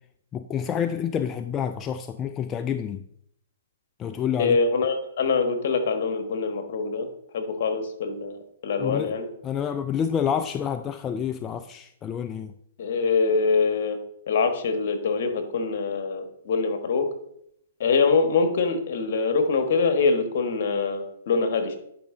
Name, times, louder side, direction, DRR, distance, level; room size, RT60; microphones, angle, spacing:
voice 1, 0.3-3.0 4.0-4.6 8.8-9.1 9.4-12.5, left 8 dB, 20° left, 0.3 m, -28 dB
voice 2, 4.4-7.1 7.3-9.3 12.8-14.0 14.3-17.1 17.8-21.8, left 4 dB, 60° left, 1.4 m, -24 dB
10.5 x 5.2 x 3.8 m
hypercardioid pair, 130°, 0 cm